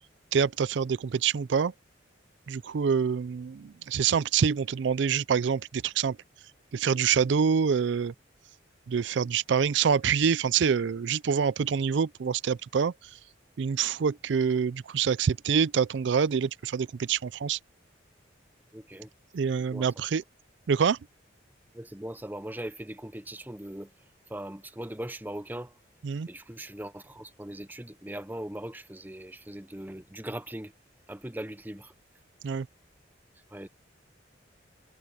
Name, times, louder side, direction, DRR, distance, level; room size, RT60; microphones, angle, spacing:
voice 1, 0.3-1.7 2.5-6.2 6.7-8.1 8.9-12.9 13.6-17.6 19.3-20.2 20.7-21.0 26.0-26.3 32.4-32.7, right 6 dB, 70° right, 0.4 m, -26 dB
voice 2, 18.7-19.1 19.7-19.9 21.7-23.9 24.3-25.8 26.3-30.7 31.1-31.9 33.5-33.7, right 1 dB, 10° right, 0.7 m, -39 dB
head